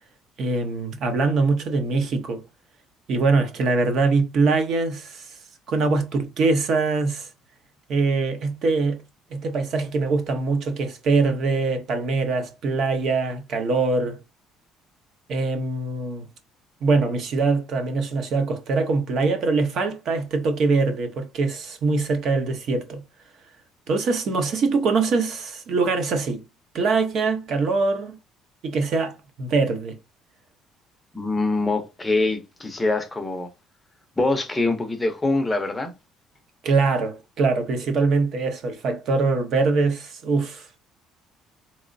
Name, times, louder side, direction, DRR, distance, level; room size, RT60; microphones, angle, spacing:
voice 1, 0.4-2.4 3.1-5.3 5.7-7.3 7.9-9.0 9.3-14.2 15.3-16.3 16.8-23.0 23.9-26.4 26.7-28.2 28.6-30.0 36.6-40.7, right 3 dB, 50° right, 0.7 m, -23 dB
voice 2, 31.1-33.5 34.2-35.9, left 2 dB, 10° left, 0.6 m, -24 dB
3.7 x 3.0 x 2.6 m
cardioid pair, 155°, 0 cm